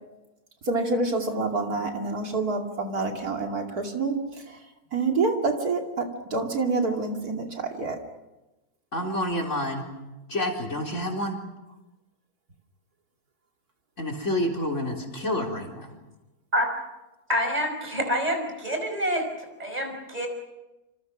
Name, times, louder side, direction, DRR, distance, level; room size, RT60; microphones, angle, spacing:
voice 1, 0.7-4.2 4.9-6.0 6.3-8.0, right 3 dB, 70° right, 2 dB, 3.2 m, -27 dB
voice 2, 8.9-9.9 10.3-11.4 14.0-15.9, left 1 dB, 45° left, 4 dB, 4.3 m, -28 dB
voice 3, 17.3-20.3, equal, 25° right, 3 dB, 5.7 m, -27 dB
27.5 x 27.5 x 6.2 m, 1.0 s
omnidirectional pair, 1.7 m